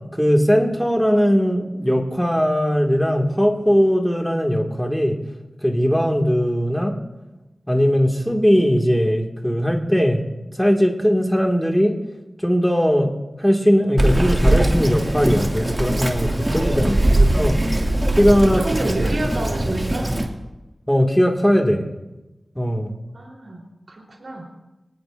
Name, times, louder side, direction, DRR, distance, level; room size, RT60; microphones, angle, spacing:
voice 1, 0.1-5.2 5.6-7.0 7.7-10.2 10.6-12.0 12.4-17.6 18.1-18.6 20.9-21.8 22.6-22.9, equal, 5° left, 1 dB, 2.1 m, -19 dB
Bird vocalization bird call bird song, 14.0-20.3, right 1 dB, 20° right, 2.3 m, -20 dB
voice 2, 16.8-17.6 18.5-20.1 23.1-24.5, right 2 dB, 65° right, -1 dB, 3.8 m, -30 dB
25.0 x 18.5 x 2.6 m, 1.0 s
wide cardioid pair, 85°, 0 cm